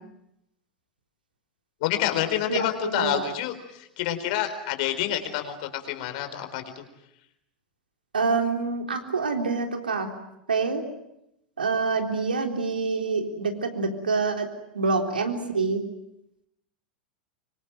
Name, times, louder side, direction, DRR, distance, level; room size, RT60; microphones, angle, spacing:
voice 1, 1.8-6.8, left 12 dB, 50° left, 7 dB, 4.3 m, -28 dB
voice 2, 8.1-10.1 10.5-10.8 11.6-14.5 14.7-15.8, right 4 dB, 75° right, 4 dB, 3.8 m, -26 dB
25.5 x 25.0 x 9.0 m, 0.82 s
figure-of-eight pair, 85°, 5 cm